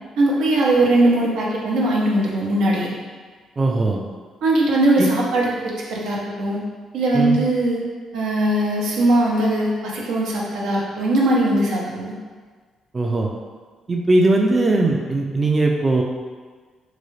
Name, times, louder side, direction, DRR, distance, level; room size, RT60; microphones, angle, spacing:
voice 1, 0.2-2.9 4.4-6.6 6.9-7.8 8.1-12.1, right 1 dB, 85° right, -4 dB, 0.8 m, -20 dB
voice 2, 3.6-4.0 5.0-5.1 7.1-7.4 12.9-13.3 13.9-16.0, right 2 dB, 30° right, 0 dB, 0.3 m, -19 dB
3.8 x 2.3 x 3.1 m, 1.5 s
cardioid pair, 90°, 0 cm